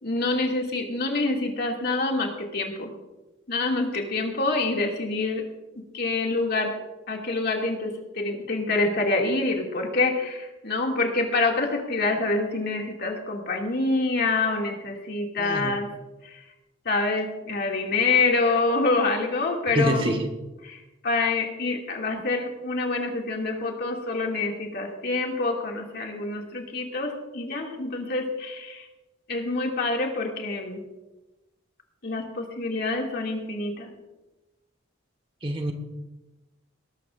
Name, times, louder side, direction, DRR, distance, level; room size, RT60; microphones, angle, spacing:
voice 1, 0.0-2.9 3.5-5.4 5.8-6.7 7.1-15.9 16.2-16.3 16.9-20.1 20.6-20.8 21.0-28.8 29.3-30.8 32.0-33.9, left 3 dB, 55° left, 0 dB, 2.3 m, -26 dB
voice 2, 15.4-15.8 19.7-20.3 35.4-35.7, right 1 dB, 30° right, 5 dB, 1.3 m, -26 dB
20.0 x 12.5 x 2.5 m, 1.1 s
head